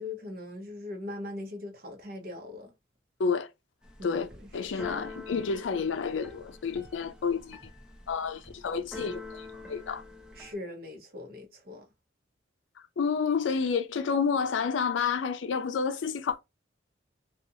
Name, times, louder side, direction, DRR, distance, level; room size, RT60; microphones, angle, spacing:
voice 1, 0.0-2.7 4.0-5.1 10.3-11.9, left 2 dB, 50° right, 0.8 m, -41 dB
Keyboard (musical), 3.8-10.5, left 3 dB, 5° right, 0.4 m, -46 dB
voice 2, 4.0-7.6 8.1-10.0 13.0-16.4, left 5 dB, 90° left, 0.4 m, -30 dB
2.8 x 2.4 x 2.4 m
head